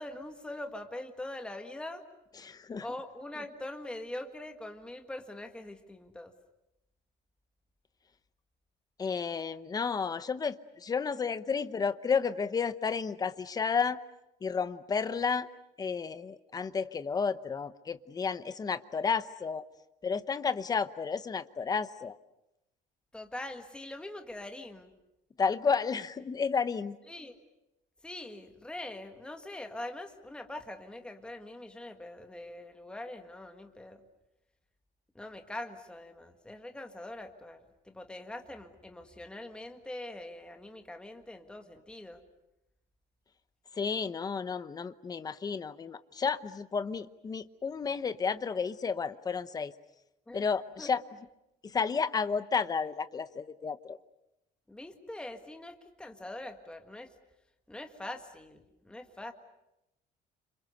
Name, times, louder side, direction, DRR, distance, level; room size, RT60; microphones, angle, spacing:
voice 1, 0.0-2.0 2.8-6.3 23.1-24.9 27.1-27.4 28.0-34.0 35.2-42.2 50.3-50.4 50.8-50.9 54.7-57.1 57.7-59.3, left 1 dB, 5° left, 5 dB, 1.7 m, -43 dB
voice 2, 2.4-2.9 9.0-14.0 14.4-15.5 15.8-19.7 20.0-22.2 25.4-27.0 43.7-49.7 50.3-51.0 51.6-54.0, left 5 dB, 25° left, 13 dB, 0.9 m, -32 dB
29.5 x 26.5 x 6.7 m, 0.88 s
cardioid pair, 160°, 17 cm